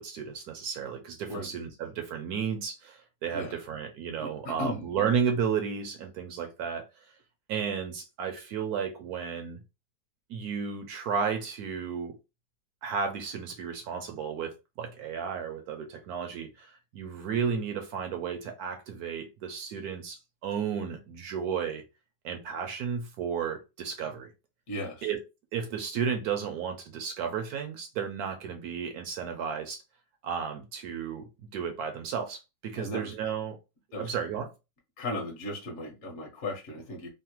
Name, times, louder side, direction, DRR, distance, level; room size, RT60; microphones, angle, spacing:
voice 1, 0.0-6.8 7.5-9.6 10.3-12.1 12.8-21.8 22.2-24.3 25.0-25.2 25.5-29.8 30.2-31.2 31.5-33.6 34.0-34.5, right 7 dB, 70° right, 0.9 m, -33 dB
voice 2, 4.2-4.9 24.7-25.1 32.8-33.1 33.9-34.1 35.0-37.1, left 1 dB, 55° left, 1.0 m, -36 dB
3.1 x 2.1 x 2.9 m
omnidirectional pair, 2.0 m